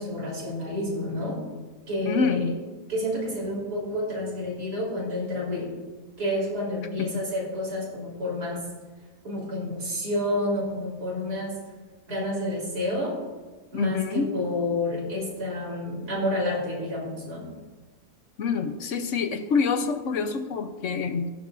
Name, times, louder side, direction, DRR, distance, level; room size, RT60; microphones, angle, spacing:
voice 1, 0.0-1.4 1.9-2.5 2.9-5.7 6.2-8.6 9.2-11.5 12.1-13.2 13.7-17.5, left 1 dB, 75° right, -3 dB, 4.2 m, -29 dB
voice 2, 2.0-2.5 7.0-7.2 13.7-14.3 18.4-21.3, left 5 dB, 60° left, 8 dB, 1.0 m, -26 dB
15.5 x 12.5 x 2.6 m, 1.3 s
omnidirectional pair, 1.7 m